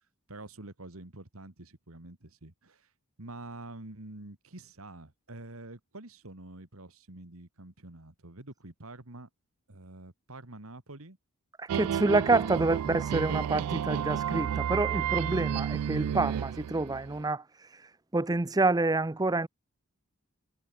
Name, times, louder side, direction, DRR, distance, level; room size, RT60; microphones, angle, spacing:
voice 1, 0.3-2.9 3.2-9.3 9.7-11.2 12.3-12.8, right 2 dB, 70° right, 2.3 m, -47 dB
voice 2, 11.6-17.8 18.1-19.5, right 2 dB, 15° right, 0.6 m, -28 dB
sound 1, 11.7-17.3, right 9 dB, 90° right, 0.3 m, -31 dB
head